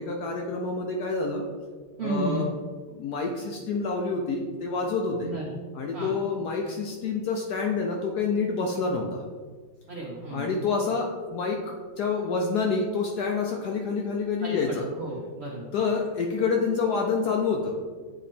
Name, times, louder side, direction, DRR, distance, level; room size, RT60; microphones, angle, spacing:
voice 1, 0.0-1.4 2.0-2.5 2.9-5.3 5.7-9.2 10.3-14.8 15.7-17.8, left 4 dB, 70° left, 1 dB, 1.0 m, -28 dB
voice 2, 2.0-2.5 5.2-5.6 5.9-6.2 9.9-10.5 14.4-15.7, right 1 dB, 70° right, -3 dB, 0.6 m, -33 dB
8.3 x 3.1 x 4.2 m, 1.5 s
omnidirectional pair, 2.2 m